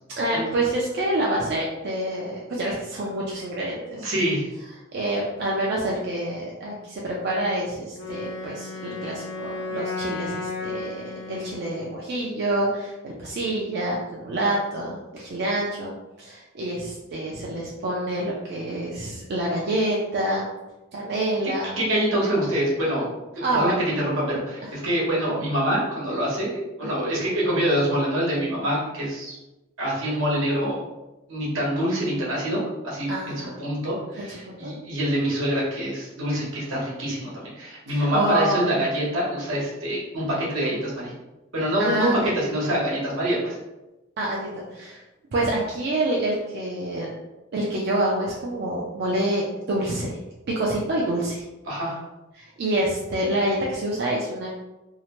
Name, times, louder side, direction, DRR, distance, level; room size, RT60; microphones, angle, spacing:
voice 1, 0.2-4.1 4.9-20.5 20.9-21.8 23.4-23.8 33.1-33.5 34.2-34.7 37.9-38.8 41.8-42.1 44.2-45.0 45.3-47.1 47.5-50.1 50.5-51.4 52.3-54.5, right 1 dB, 55° right, -4 dB, 0.4 m, -27 dB
voice 2, 4.0-4.5 21.4-23.1 23.4-29.4 29.8-30.8 31.3-41.1 41.5-43.6 51.7-52.0, equal, 80° right, -5 dB, 1.0 m, -25 dB
Wind instrument woodwind instrument, 8.0-11.9, left 3 dB, 60° left, 0.6 m, -34 dB
2.7 x 2.1 x 2.9 m, 1.0 s
head